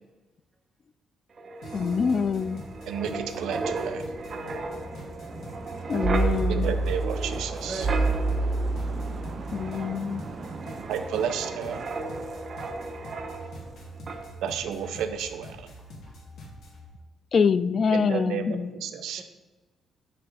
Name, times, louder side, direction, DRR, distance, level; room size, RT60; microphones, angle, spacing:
Wind, 1.4-13.8 14.1-14.3, right 3 dB, 45° right, 0.6 m, -31 dB
sound 1, 1.6-16.9, right 1 dB, 70° left, 1.7 m, -44 dB
voice 1, 1.7-2.6 5.9-6.7 9.5-10.2 17.3-18.7, left 6 dB, 45° left, 0.3 m, -25 dB
voice 2, 2.9-4.1 6.5-7.9 10.9-11.8 14.4-15.7 17.9-19.2, right 8 dB, 80° right, 0.5 m, -32 dB
voice 3, 7.2-8.2 13.2-13.3 15.9-16.1 19.2-19.3, right 3 dB, 25° right, 1.0 m, -40 dB
7.8 x 3.2 x 5.3 m
cardioid pair, 90°, 0 cm